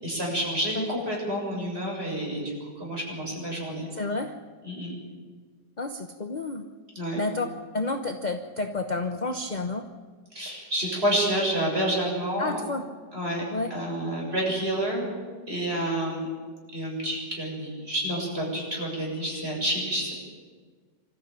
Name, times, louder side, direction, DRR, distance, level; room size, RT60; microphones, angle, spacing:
voice 1, 0.0-3.9 4.6-4.9 7.0-7.2 10.3-12.6 13.1-13.4 13.7-15.1 15.5-16.3 16.7-20.1, right 1 dB, 35° right, -2 dB, 7.2 m, -29 dB
voice 2, 3.9-4.3 5.8-6.6 7.2-7.5 7.7-9.9 12.4-12.9 13.5-13.7, left 2 dB, 30° left, 6 dB, 0.9 m, -30 dB
25.5 x 14.5 x 8.8 m, 1.5 s
omnidirectional pair, 1.9 m